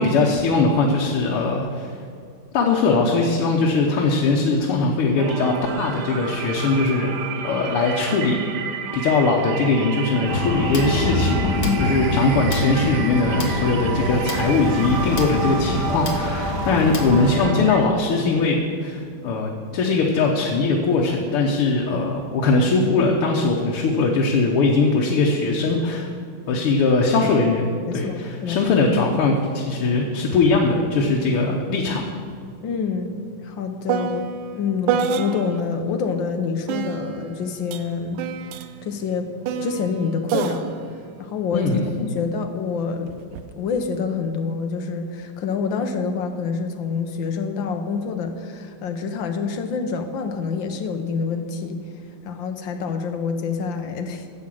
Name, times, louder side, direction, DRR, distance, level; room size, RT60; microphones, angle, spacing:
voice 1, 0.0-1.9 2.5-8.4 8.9-26.1 26.5-27.6 27.9-32.0 41.5-41.8, left 3 dB, 90° left, -1 dB, 2.0 m, -20 dB
sound 1, 5.2-17.8, right 7 dB, 60° right, 1.2 m, -31 dB
sound 2, 10.3-17.4, left 3 dB, 50° left, 1.5 m, -26 dB
voice 2, 11.6-12.0 27.2-27.3 27.9-28.6 32.6-33.2 33.4-34.2 34.5-38.2 38.8-39.3 39.6-40.7 41.2-41.7 42.0-43.1 43.5-51.8 52.2-54.3, left 5 dB, 65° left, 6 dB, 1.6 m, -27 dB
sound 3, 30.5-30.7 31.0-35.8 36.7-42.2 43.1-43.5, right 7 dB, 80° right, 1.5 m, -29 dB
11.0 x 7.7 x 7.6 m, 2.2 s
omnidirectional pair, 2.4 m